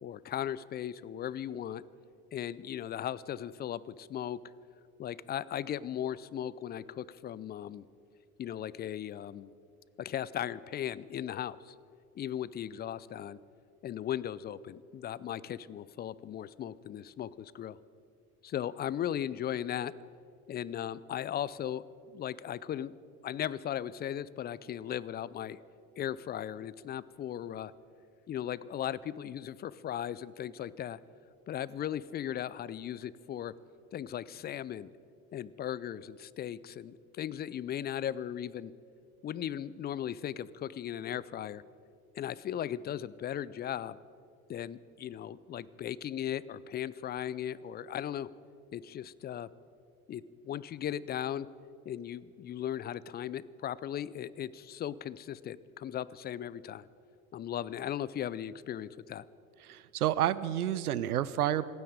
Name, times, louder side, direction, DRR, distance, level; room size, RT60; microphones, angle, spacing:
voice 1, 0.0-1.8 2.3-4.4 5.0-7.8 8.4-9.5 10.0-11.7 12.1-13.4 13.8-17.8 18.4-19.9 20.5-22.9 23.2-25.6 26.0-27.7 28.3-31.0 31.5-33.5 33.9-34.9 35.3-38.7 39.2-41.6 42.2-44.0 44.5-48.3 48.7-49.5 50.1-51.5 51.9-56.9 57.3-59.2, left 10 dB, 25° left, 19 dB, 0.4 m, -37 dB
voice 2, 59.6-61.6, right 12 dB, 90° right, 17 dB, 0.7 m, -30 dB
27.5 x 9.6 x 5.0 m, 2.4 s
hypercardioid pair, 85°, 43 cm